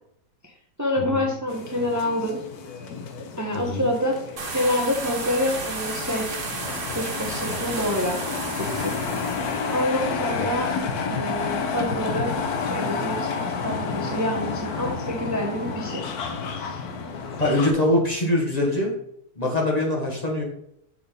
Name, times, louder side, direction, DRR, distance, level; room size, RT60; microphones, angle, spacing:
voice 1, 0.8-2.4 3.4-4.2 4.5-6.4 6.9-8.2 8.5-9.3 9.7-10.7 11.1-12.3 12.6-13.3 13.6-16.1 16.6-16.8, left 1 dB, 15° right, 0 dB, 0.9 m, -27 dB
sound 1, 1.5-17.7, left 5 dB, 85° left, 1.4 m, -30 dB
voice 2, 3.5-3.9 10.3-10.5 17.2-19.0 19.4-20.4, left 1 dB, 30° left, -1 dB, 1.3 m, -23 dB
sound 2, 4.4-12.5, right 3 dB, 55° right, 1.7 m, -34 dB
6.6 x 4.4 x 5.1 m, 0.75 s
omnidirectional pair, 1.6 m